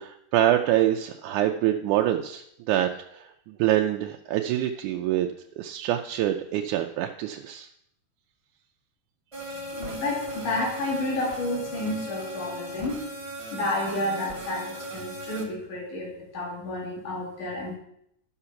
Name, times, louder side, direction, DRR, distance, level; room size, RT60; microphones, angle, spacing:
voice 1, 0.0-5.3 5.6-7.7, right 12 dB, 85° right, 4 dB, 2.1 m, -25 dB
sound 1, 9.3-15.4, equal, 20° right, 0.8 m, -37 dB
voice 2, 9.7-13.0 13.5-17.8, left 1 dB, 75° left, -3 dB, 4.2 m, -30 dB
12.0 x 6.9 x 5.7 m, 0.75 s
omnidirectional pair, 3.6 m